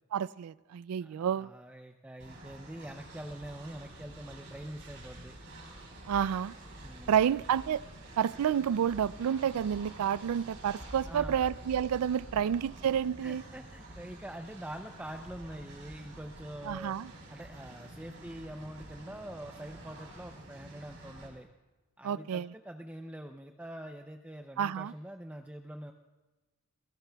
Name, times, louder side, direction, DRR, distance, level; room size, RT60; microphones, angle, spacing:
voice 1, 0.1-1.5 6.1-6.5 7.1-7.8 8.2-13.4 16.6-17.1 22.0-22.5 24.6-24.9, right 8 dB, 85° right, 21 dB, 0.3 m, -29 dB
voice 2, 1.0-5.4 6.8-7.3 11.0-11.5 13.2-17.0 17.3-21.5 22.0-25.9, right 1 dB, 5° right, 5 dB, 0.4 m, -45 dB
Train, 2.2-21.3, right 1 dB, 60° right, 4.4 m, -48 dB
26.0 x 17.0 x 2.3 m, 1.2 s
head